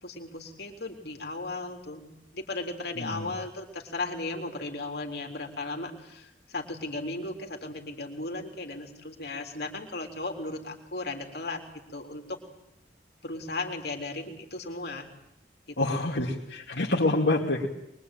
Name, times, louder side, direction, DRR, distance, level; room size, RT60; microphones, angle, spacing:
voice 1, 0.0-2.1 2.3-11.6 11.9-12.4 13.2-15.1 15.7-16.1, left 2 dB, 65° left, 2 dB, 3.7 m, -36 dB
voice 2, 3.0-3.3 15.8-17.7, left 2 dB, 80° left, -3 dB, 2.6 m, -27 dB
23.5 x 23.0 x 9.2 m, 0.81 s
head